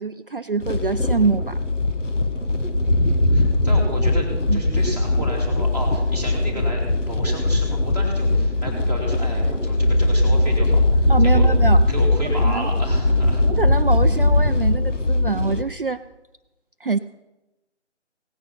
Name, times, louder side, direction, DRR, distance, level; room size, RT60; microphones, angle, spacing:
voice 1, 0.0-1.6 4.5-4.6 11.1-11.9 12.4-12.7 13.4-16.0 16.8-17.0, right 4 dB, 50° right, 10 dB, 0.4 m, -25 dB
sound 1, 0.6-15.6, left 2 dB, 85° left, 1.4 m, -20 dB
voice 2, 3.3-11.5 11.9-13.5, equal, 5° left, -4 dB, 1.7 m, -32 dB
17.0 x 9.4 x 5.7 m, 1.0 s
figure-of-eight pair, 155°, 36 cm